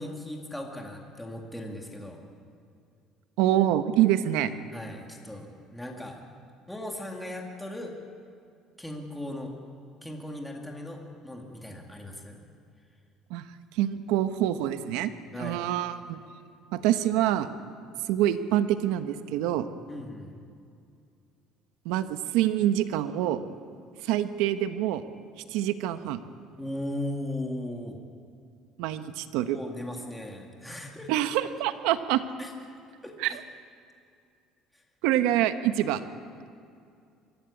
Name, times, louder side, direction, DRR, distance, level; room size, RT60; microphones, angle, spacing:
voice 1, 0.0-2.2 4.7-6.2 6.7-8.0 8.8-9.5 10.0-12.4 15.3-15.6 19.9-20.3 26.6-28.0 29.1-29.2 29.5-31.1 32.4-32.5 33.0-33.4, left 1 dB, 5° left, 1 dB, 2.2 m, -37 dB
voice 2, 3.4-4.5 13.3-13.4 13.7-16.2 16.7-17.5 18.1-19.7 21.8-23.4 24.0-25.0 25.5-26.2 28.8-29.6 31.1-32.2 33.2-33.4 35.0-36.0, right 12 dB, 90° right, 10 dB, 1.1 m, -26 dB
23.5 x 15.5 x 8.5 m, 2.4 s
cardioid pair, 150°, 0 cm